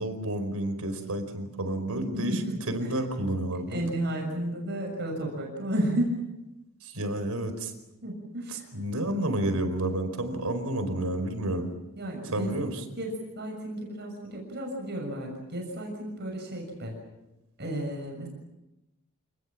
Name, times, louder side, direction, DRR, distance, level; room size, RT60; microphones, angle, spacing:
voice 1, 0.0-2.4 2.7-3.8 6.8-7.7 8.5-11.7 12.3-12.7, right 1 dB, 90° right, 8 dB, 4.8 m, -30 dB
voice 2, 2.1-2.9 3.7-6.1 8.0-8.7 12.0-12.5 13.0-17.0 17.6-18.3, right 1 dB, 50° right, 1 dB, 6.7 m, -32 dB
28.5 x 20.5 x 7.5 m, 0.96 s
head